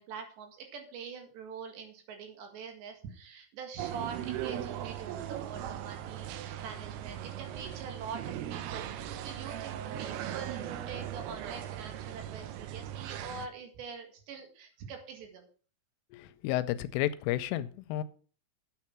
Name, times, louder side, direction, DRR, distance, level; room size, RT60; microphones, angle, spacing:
voice 1, 0.0-15.5, right 6 dB, 65° right, 5 dB, 3.8 m, -44 dB
sound 1, 3.8-13.5, right 11 dB, 90° right, 2.2 m, -39 dB
voice 2, 16.1-18.0, left 14 dB, 90° left, 13 dB, 3.2 m, -32 dB
9.5 x 8.4 x 5.8 m, 0.41 s
omnidirectional pair, 5.7 m